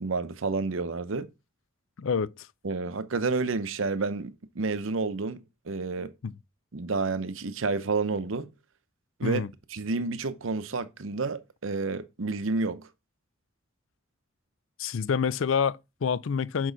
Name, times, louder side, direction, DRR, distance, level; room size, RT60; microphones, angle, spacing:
voice 1, 0.0-1.3 2.6-6.1 6.7-8.5 9.2-9.4 9.7-12.9, right 3 dB, 75° right, 0.7 m, -30 dB
voice 2, 2.0-2.5 6.2-6.3 9.2-9.5 14.8-16.7, left 6 dB, 75° left, 0.4 m, -27 dB
6.2 x 6.0 x 3.9 m
head